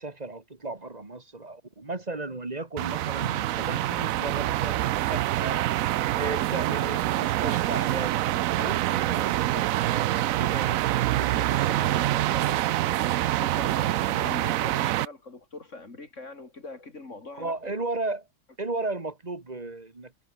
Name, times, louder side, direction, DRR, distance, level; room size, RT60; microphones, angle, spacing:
voice 1, 0.0-3.3 3.6-5.8 6.1-10.8 11.1-11.5 17.4-18.3 18.6-20.1, right 2 dB, 25° right, 2.1 m, -35 dB
sound 1, 2.8-15.1, right 15 dB, 70° right, 0.9 m, -26 dB
Acoustic guitar / Strum, 3.2-8.0, right 4 dB, 50° right, 2.6 m, -47 dB
voice 2, 11.5-17.5, left 3 dB, 50° left, 3.7 m, -42 dB
omnidirectional pair, 1.6 m